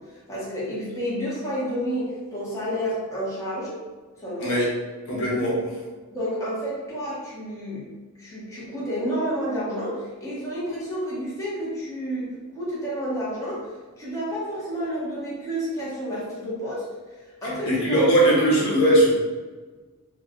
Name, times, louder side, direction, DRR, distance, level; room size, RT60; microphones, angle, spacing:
voice 1, 0.0-3.8 4.2-4.6 6.1-7.9 8.2-18.5, equal, 15° left, -9 dB, 1.1 m, -30 dB
voice 2, 5.1-5.6 17.6-19.1, right 1 dB, 70° left, -5 dB, 1.1 m, -19 dB
3.4 x 2.3 x 3.6 m, 1.3 s
head